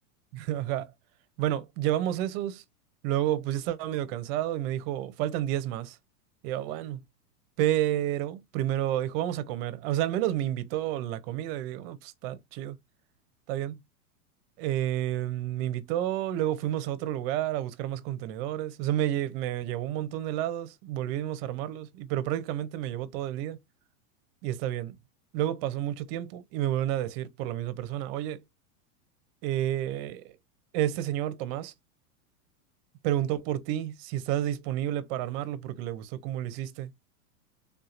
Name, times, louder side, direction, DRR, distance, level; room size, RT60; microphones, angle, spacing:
voice 1, 0.3-0.9 1.4-2.6 3.0-6.0 6.4-7.0 7.6-12.8 13.5-13.8 14.6-23.6 24.4-25.0 25.3-28.4 29.4-30.4 30.7-31.7 33.0-36.9, right 12 dB, 40° right, 0.6 m, -30 dB
3.5 x 2.8 x 2.4 m
supercardioid pair, 135°, 45 cm